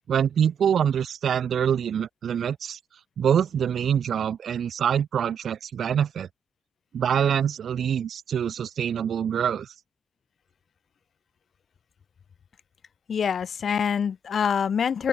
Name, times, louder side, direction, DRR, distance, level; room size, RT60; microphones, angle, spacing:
voice 1, 0.1-2.8 3.2-6.3 6.9-9.7, right 8 dB, 80° right, 0.4 m, -25 dB
voice 2, 13.1-15.1, left 7 dB, 70° left, 0.8 m, -25 dB
open air
cardioid pair, 70°, 0 cm